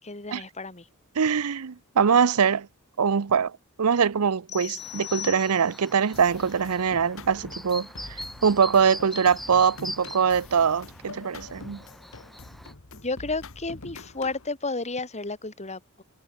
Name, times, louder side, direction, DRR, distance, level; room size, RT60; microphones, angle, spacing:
voice 1, 0.0-0.9 12.9-16.0, left 3 dB, 30° left, 4.2 m, -32 dB
voice 2, 1.2-2.7 3.0-3.5 3.8-11.8, right 6 dB, 90° right, 0.6 m, -23 dB
sound 1, 4.5-6.0, left 13 dB, 80° left, 3.7 m, -38 dB
Chirp tweet, 4.8-12.7, equal, ahead, 3.2 m, -42 dB
sound 2, 6.1-14.5, left 3 dB, 65° left, 1.8 m, -45 dB
head